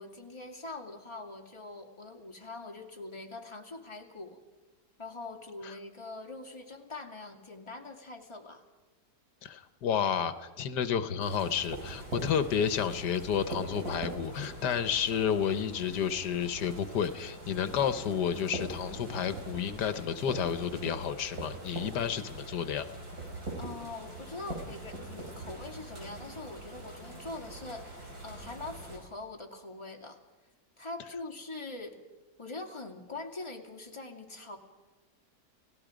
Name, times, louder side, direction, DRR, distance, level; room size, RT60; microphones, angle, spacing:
voice 1, 0.0-4.4 5.0-8.6 23.6-30.2 30.8-32.0 32.4-34.6, left 3 dB, 15° left, 2 dB, 2.4 m, -43 dB
voice 2, 9.4-22.8, left 8 dB, 85° left, 12 dB, 1.6 m, -31 dB
sound 1, 11.2-29.0, right 1 dB, 65° right, 5.5 m, -42 dB
30.0 x 17.5 x 5.1 m, 1.3 s
omnidirectional pair, 1.7 m